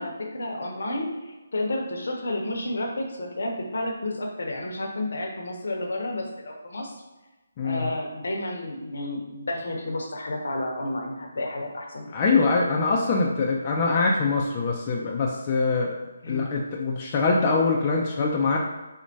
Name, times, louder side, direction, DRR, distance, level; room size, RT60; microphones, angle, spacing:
voice 1, 0.0-6.9 7.6-12.1 16.2-16.5, left 1 dB, 70° left, 1 dB, 0.7 m, -31 dB
voice 2, 7.6-7.9 12.1-15.9 16.3-18.6, left 4 dB, 30° left, -2 dB, 0.4 m, -23 dB
4.3 x 2.1 x 2.7 m, 1.1 s
figure-of-eight pair, 155°, 0 cm